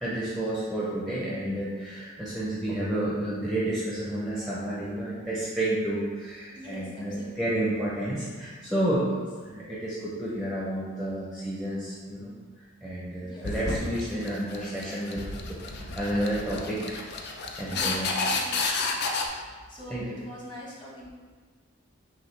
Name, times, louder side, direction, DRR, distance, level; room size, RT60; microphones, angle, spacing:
voice 1, 0.0-9.1 9.4-12.3 12.8-15.2 15.5-17.0 17.6-18.1 19.9-20.0, right 1 dB, ahead, -8 dB, 0.5 m, -30 dB
voice 2, 6.5-7.7 9.1-9.2 13.2-13.5 17.7-19.0 19.7-21.1, equal, 25° left, -5 dB, 1.0 m, -44 dB
sound 1, 13.4-19.2, left 3 dB, 50° left, 0.5 m, -31 dB
6.2 x 2.6 x 3.2 m, 1.5 s
head